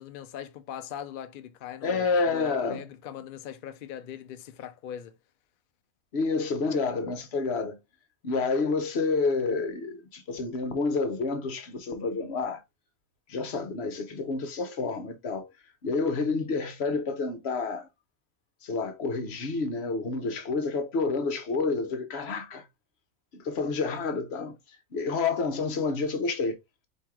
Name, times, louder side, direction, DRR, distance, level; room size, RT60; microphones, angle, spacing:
voice 1, 0.0-5.1, left 9 dB, 75° left, 0.4 m, -40 dB
voice 2, 1.8-2.8 6.1-7.8 8.2-12.6 13.3-15.5 15.8-17.9 18.6-22.6 23.4-24.6 24.9-26.6, left 4 dB, 55° left, 1.0 m, -29 dB
4.4 x 2.8 x 3.6 m
omnidirectional pair, 1.4 m